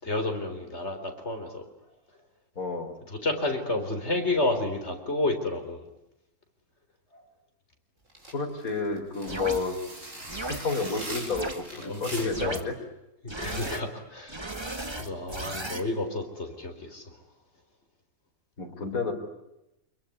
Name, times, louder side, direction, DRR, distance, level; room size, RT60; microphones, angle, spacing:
voice 1, 0.0-1.6 3.1-5.9 7.1-7.2 9.3-9.5 11.8-12.6 13.2-14.7 15.0-17.2 18.8-18.9, left 2 dB, 45° left, 5 dB, 4.2 m, -31 dB
voice 2, 2.6-2.9 8.3-9.8 10.4-12.7 18.6-19.1, left 4 dB, 70° left, 3 dB, 4.3 m, -31 dB
sound 1, 8.1-12.6, right 1 dB, 55° right, 5.8 m, -41 dB
sound 2, 9.3-9.6 10.3-10.6 11.3-11.5 12.3-12.6 13.3-13.8 14.3-15.8, right 2 dB, 20° right, 1.8 m, -35 dB
26.5 x 22.5 x 9.7 m, 0.88 s
omnidirectional pair, 1.5 m